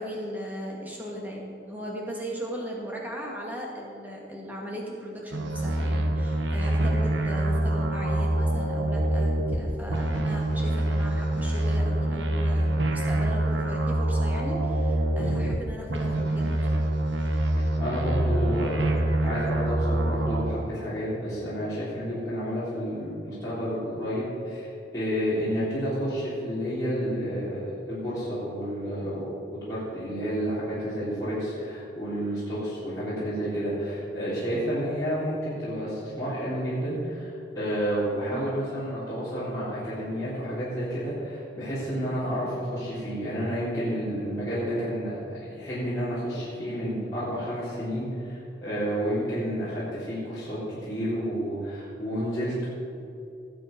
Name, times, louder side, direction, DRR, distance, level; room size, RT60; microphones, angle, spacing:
voice 1, 0.0-16.9 25.5-25.7 38.3-38.6, equal, 10° right, -3 dB, 2.2 m, -37 dB
sound 1, 5.3-9.6 9.9-15.6 15.9-20.5, right 1 dB, 90° right, 1.4 m, -25 dB
voice 2, 17.8-29.3 29.7-52.7, equal, 20° left, -13 dB, 3.8 m, -30 dB
19.0 x 8.0 x 5.4 m, 2.7 s
head